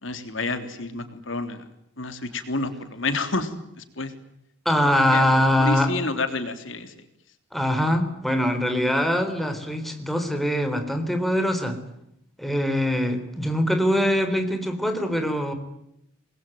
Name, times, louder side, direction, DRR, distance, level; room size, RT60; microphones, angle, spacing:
voice 1, 0.0-1.6 2.0-3.5 3.8-4.1 5.1-5.3 5.6-6.9, left 3 dB, 70° left, 8 dB, 3.4 m, -29 dB
voice 2, 4.7-5.9 7.5-11.8 12.4-15.5, equal, ahead, 6 dB, 4.0 m, -23 dB
27.5 x 21.0 x 9.4 m, 0.81 s
head